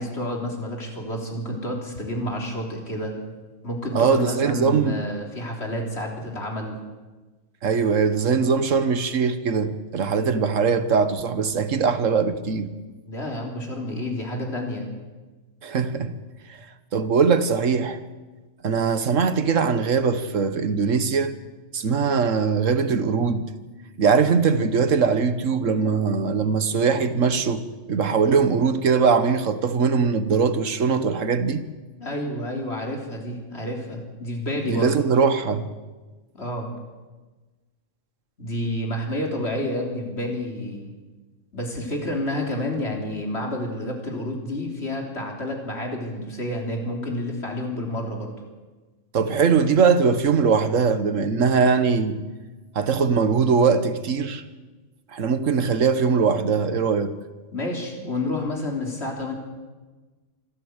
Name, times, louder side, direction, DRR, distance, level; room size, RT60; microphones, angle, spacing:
voice 1, 0.0-3.2 3.6-6.8 13.1-14.9 32.0-35.0 36.3-36.7 38.4-40.9 41.5-48.3 57.5-59.3, left 1 dB, 55° left, 3.9 m, -29 dB
voice 2, 3.9-5.0 7.6-12.7 15.6-16.1 16.9-18.0 18.6-21.4 21.7-23.5 24.0-27.6 27.9-31.6 34.7-35.7 49.1-52.2 52.7-54.4 55.1-57.2, right 5 dB, 85° right, 1.6 m, -21 dB
25.0 x 14.0 x 8.1 m
omnidirectional pair, 1.3 m